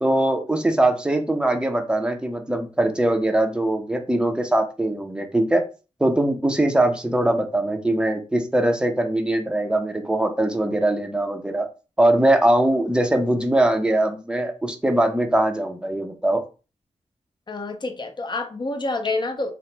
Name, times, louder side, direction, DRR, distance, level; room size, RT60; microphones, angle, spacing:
voice 1, 0.0-5.6 6.0-11.7 12.0-16.4, right 1 dB, 5° right, 0.5 m, -21 dB
voice 2, 17.5-19.5, left 2 dB, 35° left, 0.6 m, -27 dB
2.8 x 2.0 x 3.2 m
wide cardioid pair, 80°, 13 cm